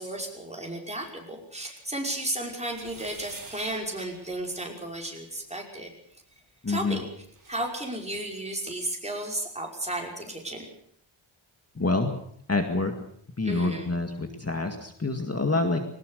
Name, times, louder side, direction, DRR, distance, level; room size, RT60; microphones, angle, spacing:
voice 1, 0.0-5.9 6.7-7.0 7.5-10.7 13.4-13.9, right 1 dB, 15° right, 0 dB, 5.6 m, -33 dB
sound 1, 2.6-5.2 6.9-7.0 7.2-7.6, right 3 dB, 40° right, 7.6 m, -47 dB
voice 2, 6.6-7.0 11.8-12.2 12.5-12.9 13.4-15.8, left 3 dB, 30° left, 5 dB, 2.0 m, -27 dB
21.5 x 19.0 x 6.7 m, 0.67 s
wide cardioid pair, 110°, 48 cm